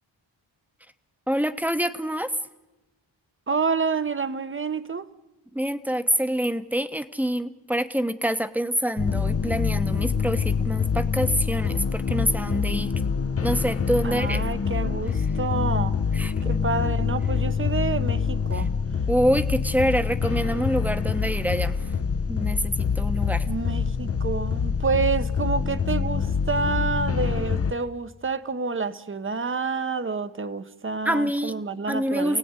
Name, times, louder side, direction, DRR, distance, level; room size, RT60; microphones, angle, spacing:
voice 1, 1.3-2.3 5.5-12.9 13.4-14.4 16.1-16.3 18.5-18.6 19.1-21.7 22.3-23.4 31.0-31.6 31.9-32.4, equal, 5° right, 1.1 m, -26 dB
voice 2, 3.5-5.1 14.0-16.0 16.4-18.7 23.5-32.4, right 4 dB, 25° right, 1.0 m, -28 dB
sound 1, 9.0-27.7, left 6 dB, 30° left, 0.8 m, -25 dB
29.0 x 17.5 x 9.7 m
wide cardioid pair, 155°, 45 cm